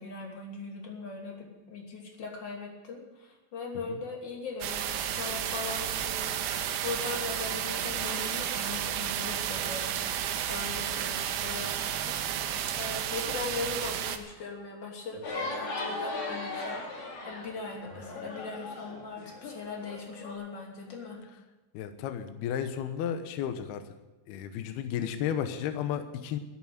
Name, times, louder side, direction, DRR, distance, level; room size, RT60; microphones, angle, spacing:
voice 1, 0.0-9.9 10.5-21.2, left 4 dB, 30° left, 0 dB, 2.3 m, -40 dB
sound 1, 4.6-14.2, right 10 dB, 75° right, 3.0 m, -32 dB
sound 2, 15.2-20.3, left 2 dB, 55° left, 4.7 m, -38 dB
voice 2, 21.7-23.9 24.3-26.4, left 9 dB, 75° left, 8 dB, 2.4 m, -33 dB
14.0 x 9.3 x 9.4 m, 1.1 s
omnidirectional pair, 5.9 m